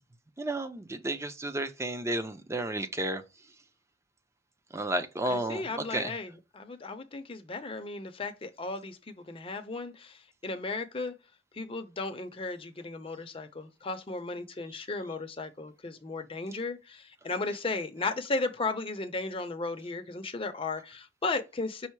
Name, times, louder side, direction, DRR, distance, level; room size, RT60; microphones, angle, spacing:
voice 1, 0.4-3.2 4.7-5.6 5.9-6.1, right 1 dB, 15° right, 0.5 m, -32 dB
voice 2, 5.2-11.1 11.5-21.9, left 3 dB, 30° left, 0.6 m, -35 dB
5.5 x 2.0 x 4.6 m
head